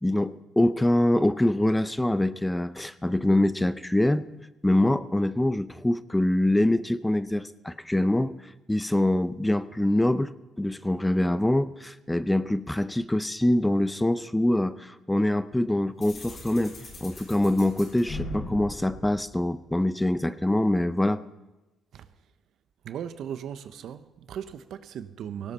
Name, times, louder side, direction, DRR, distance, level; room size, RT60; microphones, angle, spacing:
voice 1, 0.0-4.3 4.6-8.3 8.7-10.3 10.6-16.7 17.0-21.2, left 1 dB, 10° left, 0.6 m, -24 dB
sound 1, 16.0-19.9, left 1 dB, 45° left, 6.4 m, -40 dB
voice 2, 22.8-25.5, right 9 dB, 75° right, 0.8 m, -37 dB
18.5 x 18.0 x 4.2 m
cardioid pair, 90°, 0 cm